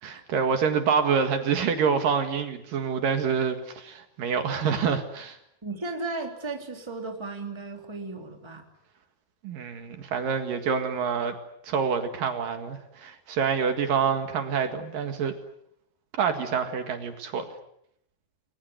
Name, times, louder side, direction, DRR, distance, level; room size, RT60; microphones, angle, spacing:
voice 1, 0.0-5.4 9.4-11.3 11.6-15.3 16.1-17.4, right 6 dB, 65° right, 7 dB, 3.5 m, -27 dB
voice 2, 5.6-8.7, right 3 dB, 5° right, 3 dB, 2.9 m, -35 dB
30.0 x 22.0 x 8.1 m, 0.74 s
omnidirectional pair, 4.3 m